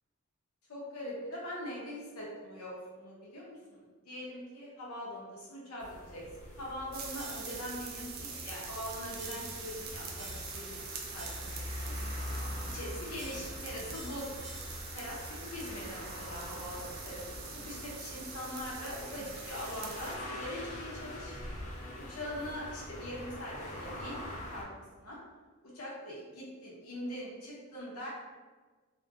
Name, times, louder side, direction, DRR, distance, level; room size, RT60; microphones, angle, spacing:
voice 1, 0.7-10.8 11.1-11.6 11.9-12.0 12.7-14.3 14.9-15.2 15.5-17.2 17.5-21.4 22.1-24.2 24.5-25.2 25.7-28.1, equal, 80° left, -5 dB, 0.7 m, -42 dB
sound 1, 5.8-24.6, left 1 dB, 35° left, 0.5 m, -44 dB
sound 2, 6.9-20.2, right 5 dB, 45° right, 0.3 m, -45 dB
sound 3, 7.2-7.8 8.4-8.8 9.2-9.8 10.2-10.8 11.2-12.8 13.2-15.1, right 2 dB, 20° right, 0.7 m, -51 dB
2.6 x 2.1 x 2.4 m, 1.4 s
head